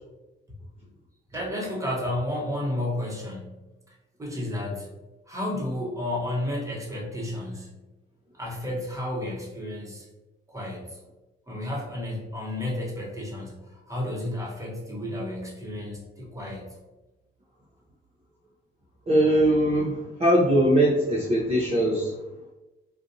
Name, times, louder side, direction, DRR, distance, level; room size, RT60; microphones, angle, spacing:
voice 1, 1.3-3.6 4.2-4.9 5.3-7.7 8.3-10.1 10.5-11.0 11.5-16.7, left 1 dB, 15° right, -3 dB, 1.1 m, -32 dB
voice 2, 19.1-22.1, right 1 dB, 30° right, -5 dB, 0.7 m, -21 dB
3.8 x 2.5 x 2.7 m, 1.1 s
cardioid pair, 90°, 20 cm